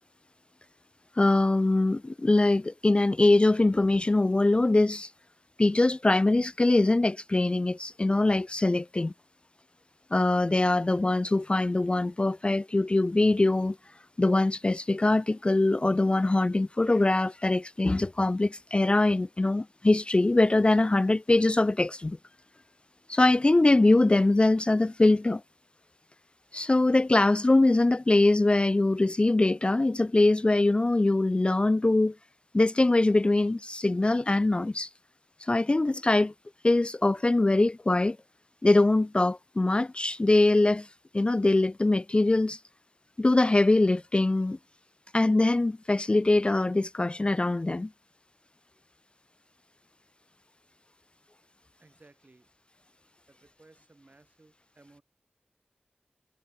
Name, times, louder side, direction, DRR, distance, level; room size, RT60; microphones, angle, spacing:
voice 1, 1.2-5.1 5.6-9.1 10.1-13.8 14.2-22.2 23.1-25.4 26.5-32.2 32.5-34.9 35.4-36.3 36.6-38.2 38.6-40.9 41.1-42.6 43.2-44.6 45.1-47.9, left 2 dB, 30° left, 0.3 m, -23 dB
voice 2, 51.8-52.5 53.3-55.0, right 2 dB, 50° right, 5.2 m, -59 dB
wide cardioid pair, 60°, 3 cm